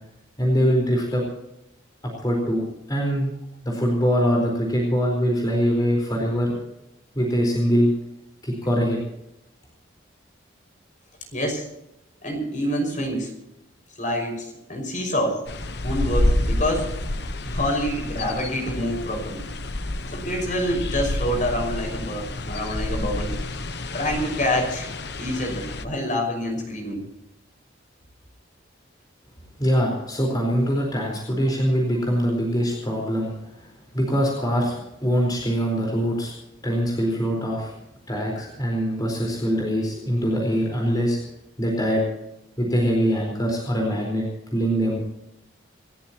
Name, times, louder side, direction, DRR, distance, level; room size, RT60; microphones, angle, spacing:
voice 1, 0.4-1.2 2.2-2.6 2.9-3.3 3.6-6.6 7.1-7.9 8.4-9.0 29.6-33.3 33.6-36.3 36.6-37.7 38.1-41.2 41.6-42.0 42.6-45.0, equal, 20° left, -1 dB, 4.4 m, -23 dB
voice 2, 11.3-11.7 12.2-13.3 14.0-15.4 15.8-16.9 17.4-19.4 20.1-23.3 23.9-24.9 25.2-27.0, equal, 40° left, 3 dB, 5.7 m, -26 dB
sound 1, 15.5-25.9, left 1 dB, 55° left, 1.0 m, -28 dB
28.0 x 14.5 x 3.0 m, 0.86 s
head